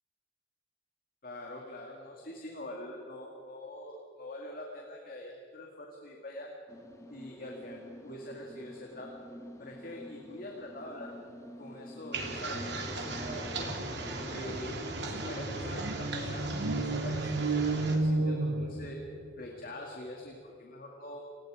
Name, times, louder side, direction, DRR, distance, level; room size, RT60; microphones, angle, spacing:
voice 1, 1.2-6.5 7.1-9.1 9.6-11.2 11.6-13.7 14.2-14.7 15.1-19.0 19.4-21.3, left 1 dB, 50° left, 0 dB, 2.4 m, -44 dB
sound 1, 6.7-14.4, equal, 15° left, 1.7 m, -49 dB
sound 2, 12.1-18.0, right 2 dB, 65° right, 3.2 m, -37 dB
sound 3, 13.9-14.0 14.2-19.3, right 2 dB, 90° right, 1.1 m, -32 dB
29.0 x 18.5 x 5.1 m, 2.6 s
head